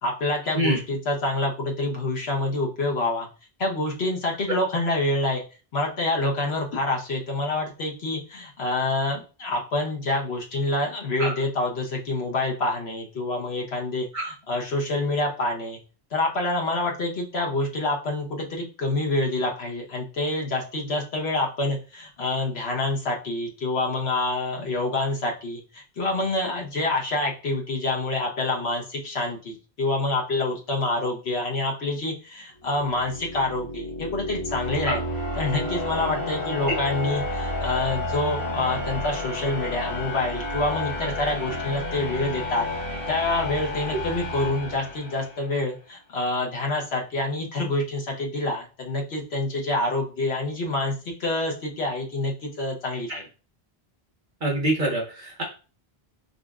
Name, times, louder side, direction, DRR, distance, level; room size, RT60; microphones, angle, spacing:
voice 1, 0.0-3.3 3.6-5.4 5.7-15.8 16.1-35.0 35.3-42.7 43.1-50.9 51.2-53.2, left 2 dB, 85° left, 0 dB, 1.2 m, -27 dB
sound 1, 32.7-45.6, left 1 dB, 60° left, 1.3 m, -31 dB
voice 2, 54.4-55.4, right 1 dB, 50° right, -2 dB, 1.4 m, -25 dB
5.4 x 2.6 x 2.4 m, 0.34 s
omnidirectional pair, 1.0 m